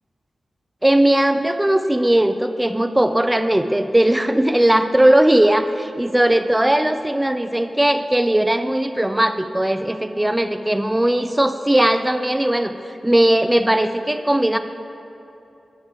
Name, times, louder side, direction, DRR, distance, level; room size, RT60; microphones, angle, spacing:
voice 1, 0.8-5.7 6.0-14.6, right 1 dB, 10° right, 9 dB, 0.3 m, -18 dB
11.0 x 8.4 x 3.5 m, 2.8 s
wide cardioid pair, 100°, 0 cm